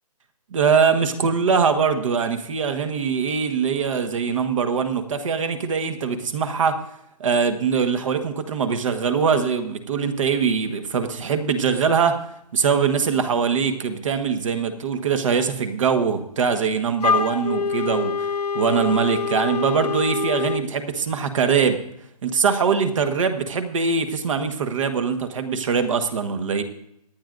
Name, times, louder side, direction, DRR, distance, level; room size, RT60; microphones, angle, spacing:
voice 1, 0.5-6.8 7.2-12.2 12.5-18.3 18.5-21.8 22.2-26.6, right 6 dB, 50° right, 9 dB, 1.4 m, -22 dB
Wind instrument woodwind instrument, 17.0-20.7, left 5 dB, 75° left, 0.7 m, -25 dB
25.5 x 9.2 x 2.6 m, 0.76 s
hypercardioid pair, 155°, 20 cm